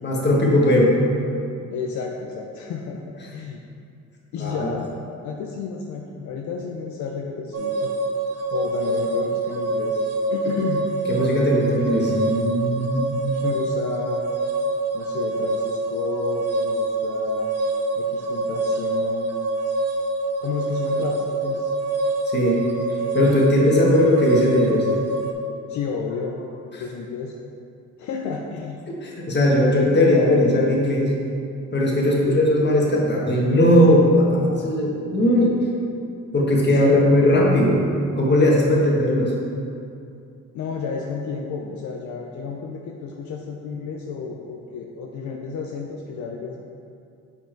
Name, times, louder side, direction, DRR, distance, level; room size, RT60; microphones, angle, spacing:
voice 1, 0.0-0.9 4.4-4.7 11.1-13.2 22.3-22.6 23.1-24.9 26.7-26.8 28.9-31.1 31.7-35.6 36.3-37.8 38.1-39.3, left 1 dB, 35° left, -3 dB, 1.4 m, -18 dB
voice 2, 1.7-3.6 4.3-4.9 5.2-7.9 8.5-10.0 10.3-10.8 13.3-14.2 14.9-17.5 17.9-19.4 20.4-21.7 25.7-26.4 26.8-27.3 28.0-28.8 32.1-32.5 36.7-37.0 40.5-46.6, left 5 dB, 75° left, 0 dB, 0.6 m, -31 dB
sound 1, 7.5-25.3, right 2 dB, 55° right, 0.7 m, -25 dB
5.5 x 4.5 x 4.5 m, 2.5 s
cardioid pair, 90°, 30 cm